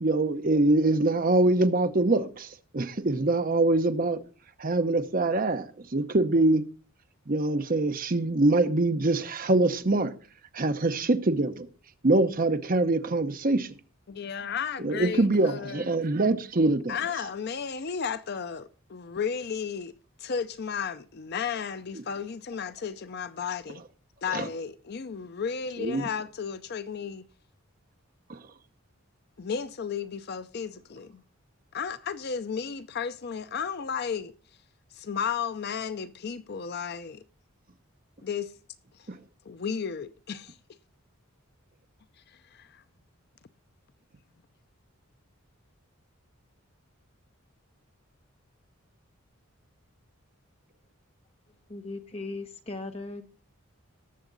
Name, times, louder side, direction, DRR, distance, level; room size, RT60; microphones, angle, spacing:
voice 1, 0.0-4.2 4.6-6.6 7.3-10.1 10.5-11.7 12.0-13.7 14.8-17.0 24.3-24.5 25.8-26.1 28.3-28.4 39.1-39.2, right 2 dB, 40° right, 0.8 m, -24 dB
voice 2, 14.1-15.9 16.9-19.9 20.2-23.8 24.2-27.3 29.4-31.2 31.7-34.3 34.9-37.2 38.2-38.5 38.9-39.1 39.5-40.6 42.3-42.8, left 6 dB, 50° left, 0.5 m, -33 dB
voice 3, 51.7-53.2, left 3 dB, 30° left, 1.3 m, -37 dB
18.5 x 7.1 x 3.9 m
head